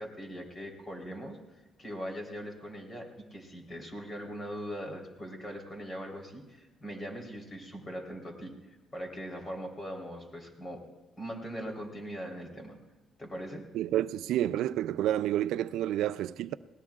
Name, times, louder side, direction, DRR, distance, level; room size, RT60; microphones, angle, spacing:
voice 1, 0.0-10.8 11.2-12.8 13.2-13.6, equal, 30° left, 3.5 m, -41 dB
voice 2, 13.7-16.5, right 12 dB, 85° right, 0.3 m, -29 dB
20.5 x 18.5 x 2.4 m
cardioid pair, 95°, 0 cm